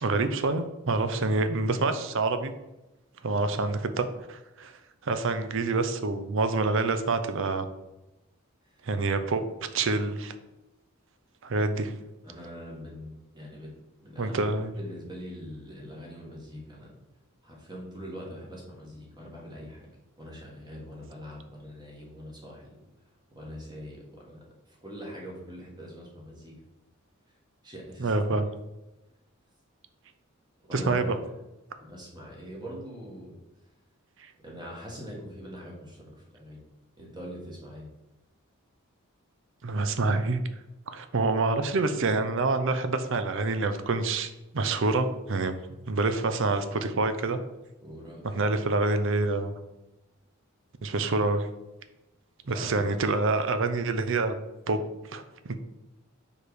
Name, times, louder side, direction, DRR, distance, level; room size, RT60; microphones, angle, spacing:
voice 1, 0.0-2.5 3.2-4.8 5.0-7.7 8.8-9.4 9.7-10.3 11.4-12.0 14.2-14.7 28.0-28.5 30.7-31.2 39.6-40.4 40.9-45.6 45.9-47.4 48.2-49.5 50.8-51.5 52.5-54.3 54.7-54.8 55.1-55.6, right 3 dB, 65° right, 10 dB, 0.6 m, -27 dB
voice 2, 12.2-13.7 14.0-16.9 17.4-19.9 20.2-22.8 23.3-26.5 27.6-28.2 30.6-31.1 31.9-33.3 34.4-36.0 36.3-36.6 37.0-37.9 47.8-48.5 52.4-52.9, equal, 20° right, -2 dB, 1.7 m, -43 dB
4.8 x 4.7 x 4.9 m, 1.0 s
head